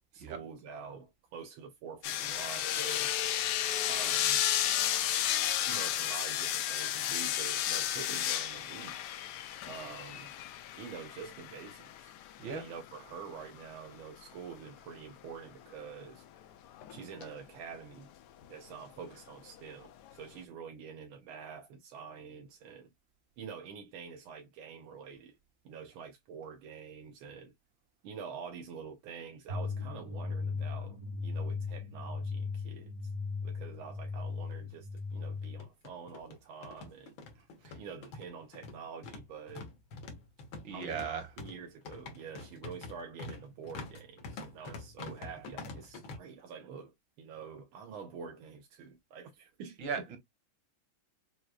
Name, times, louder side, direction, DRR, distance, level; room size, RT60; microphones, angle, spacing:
voice 1, 0.1-3.1 3.9-4.4 5.7-9.0 9.6-10.3 10.8-12.1 12.4-16.2 16.9-18.1 18.5-22.9 23.4-25.4 25.6-27.5 28.0-33.1 33.4-37.1 37.7-39.7 40.7-49.8, right 6 dB, 85° right, 1.6 m, -47 dB
sound 1, 2.0-13.4 16.7-17.3 18.4-18.5, left 11 dB, 70° left, 1.1 m, -33 dB
sound 2, 29.5-35.6, left 4 dB, 50° right, 0.5 m, -37 dB
sound 3, 34.1-34.2 34.5-34.6 35.4-46.2, left 3 dB, 90° left, 1.9 m, -46 dB
voice 2, 40.6-41.3 49.8-50.2, right 6 dB, 70° right, 2.1 m, -37 dB
6.2 x 2.4 x 2.3 m
omnidirectional pair, 2.2 m